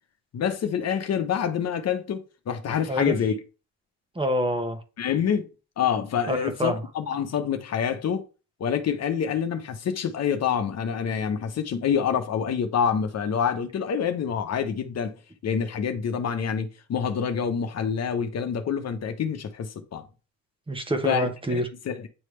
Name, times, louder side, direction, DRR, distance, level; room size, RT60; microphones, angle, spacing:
voice 1, 0.3-3.4 5.0-5.5 5.8-8.2 8.6-15.1 15.4-20.0 21.0-22.1, left 7 dB, 55° left, 1.0 m, -27 dB
voice 2, 4.1-4.8 6.3-6.8 20.7-21.7, equal, 15° right, 1.2 m, -26 dB
8.9 x 3.3 x 3.3 m
cardioid pair, 90°, 30 cm